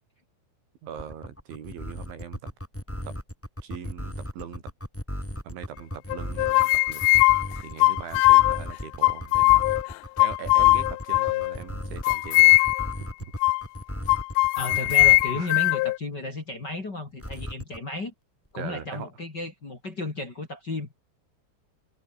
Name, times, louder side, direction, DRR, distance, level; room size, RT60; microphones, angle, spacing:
voice 1, 0.8-2.5 3.1-3.2 3.6-4.7 5.4-7.0 7.6-9.7 10.2-12.6 13.2-13.3 15.3-15.5 18.6-19.1, right 8 dB, 75° right, 6.0 m, -40 dB
sound 1, 1.0-15.4 17.2-17.8, left 1 dB, 5° left, 2.6 m, -35 dB
sound 2, 6.1-8.6 9.0-9.9 10.2-11.6 12.0-12.9 13.4-13.6 14.1-16.0, left 21 dB, 85° left, 2.6 m, -20 dB
voice 2, 14.6-18.1 18.5-20.9, left 2 dB, 25° left, 3.0 m, -33 dB
omnidirectional pair, 5.4 m